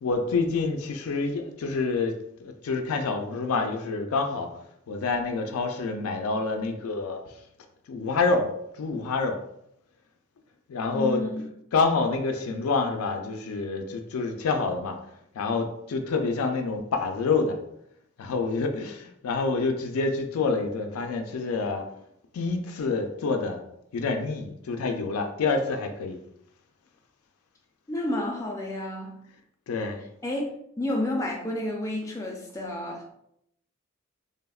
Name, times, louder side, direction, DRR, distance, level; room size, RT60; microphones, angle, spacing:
voice 1, 0.0-4.5 4.9-7.2 7.9-8.5 8.8-9.4 10.7-11.2 11.7-15.0 15.3-17.6 18.2-21.8 22.3-23.6 23.9-26.2 29.7-30.0, left 4 dB, 85° left, 5 dB, 0.4 m, -27 dB
voice 2, 10.9-11.5 27.9-29.2 30.2-30.5 30.8-33.1, left 1 dB, 15° left, 0 dB, 0.4 m, -30 dB
3.3 x 2.0 x 2.3 m, 0.76 s
head